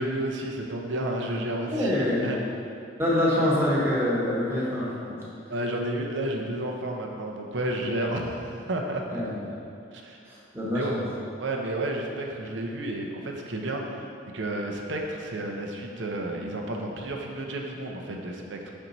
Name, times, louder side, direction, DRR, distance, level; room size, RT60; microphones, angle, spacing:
voice 1, 0.0-2.4 5.5-9.0 9.9-10.2 10.7-11.0 11.4-14.1 14.3-18.7, right 1 dB, 80° right, 1 dB, 0.7 m, -31 dB
voice 2, 1.7-2.4 3.0-5.2 9.1-9.5 10.2-11.0, left 1 dB, 15° right, -7 dB, 1.1 m, -26 dB
6.0 x 4.5 x 4.0 m, 2.6 s
head